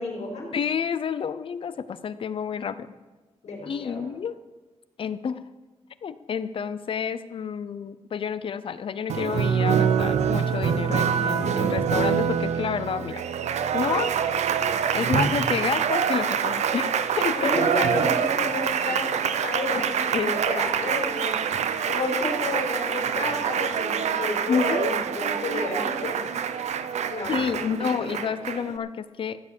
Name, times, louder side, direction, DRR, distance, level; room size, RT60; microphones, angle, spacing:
voice 1, 0.0-0.5 3.4-4.0 17.3-21.4 21.9-26.2 27.1-28.1, left 2 dB, 75° left, -2 dB, 4.9 m, -31 dB
voice 2, 0.5-2.9 3.7-4.4 5.0-5.4 6.0-14.1 14.9-17.4 19.7-20.3 24.5-25.0 27.3-29.4, left 7 dB, 50° left, 14 dB, 0.7 m, -29 dB
Applause, 9.1-28.8, right 7 dB, 85° right, 0.8 m, -25 dB
15.5 x 7.3 x 8.4 m, 1.2 s
wide cardioid pair, 170°, 11 cm